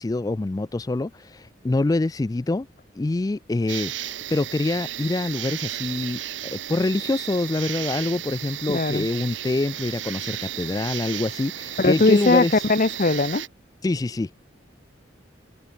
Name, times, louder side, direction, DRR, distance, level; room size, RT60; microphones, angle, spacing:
voice 1, 0.0-2.7 2.9-12.6 13.8-14.3, left 2 dB, 20° left, 0.3 m, -26 dB
sound 1, 3.7-13.5, right 12 dB, 85° right, 1.0 m, -34 dB
voice 2, 8.7-9.1 11.8-13.4, left 3 dB, 45° left, 0.8 m, -20 dB
head